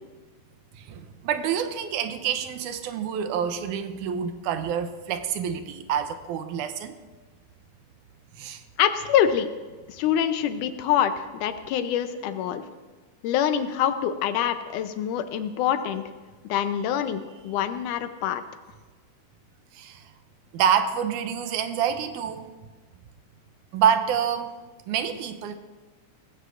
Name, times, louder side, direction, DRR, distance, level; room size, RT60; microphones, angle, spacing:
voice 1, 0.7-7.0 8.3-8.6 19.7-20.0 20.5-22.5 23.7-24.6 24.9-25.6, right 8 dB, 85° right, 9 dB, 2.2 m, -27 dB
voice 2, 8.8-9.5 9.9-12.6 13.2-16.0 16.4-18.4, left 9 dB, 90° left, 10 dB, 2.3 m, -25 dB
18.0 x 15.0 x 2.5 m, 1.3 s
omnidirectional pair, 3.5 m